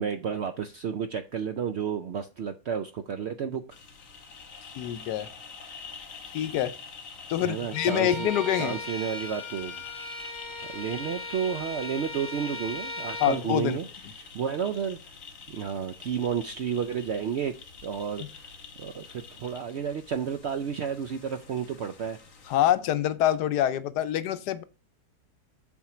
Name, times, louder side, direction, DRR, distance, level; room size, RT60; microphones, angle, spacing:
voice 1, 0.0-3.6 7.4-8.3 8.6-9.8 10.7-13.9 14.2-15.1 15.5-17.5 17.8-18.5 18.8-22.2, right 7 dB, 70° right, 0.6 m, -31 dB
sound 1, 3.7-22.7, left 5 dB, 55° left, 1.5 m, -46 dB
voice 2, 4.7-5.3 6.3-6.7 7.3-8.8 13.2-13.8 22.5-24.6, left 11 dB, 90° left, 1.3 m, -26 dB
Bowed string instrument, 7.7-13.4, left 2 dB, 30° left, 2.3 m, -37 dB
7.3 x 4.4 x 5.9 m
omnidirectional pair, 1.7 m